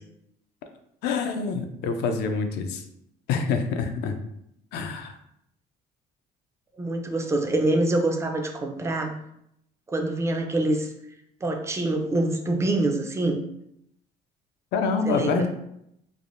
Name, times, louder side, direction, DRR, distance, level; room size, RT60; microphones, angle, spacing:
voice 1, 1.0-2.8 3.3-4.2 4.7-5.1 14.7-15.5, left 5 dB, 80° left, 6 dB, 0.4 m, -26 dB
voice 2, 6.8-9.1 9.9-10.9 11.4-13.4 15.1-15.4, right 2 dB, 15° right, 4 dB, 0.4 m, -25 dB
3.3 x 2.0 x 2.5 m, 0.77 s
cardioid pair, 110°, 17 cm